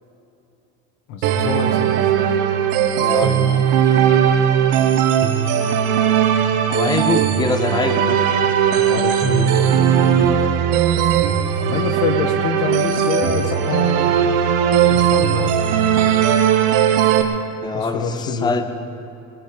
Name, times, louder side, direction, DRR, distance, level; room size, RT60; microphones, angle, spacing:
voice 1, 1.1-2.0 8.7-10.3 11.6-14.1 14.9-15.5 17.7-18.5, left 6 dB, 80° left, 8 dB, 1.5 m, -26 dB
sound 1, 1.2-17.2, right 9 dB, 75° right, 1.5 m, -18 dB
voice 2, 3.0-3.7 6.7-8.2 17.6-18.7, left 3 dB, 10° left, 9 dB, 0.7 m, -23 dB
23.0 x 10.0 x 5.4 m, 3.0 s
cardioid pair, 130°, 35 cm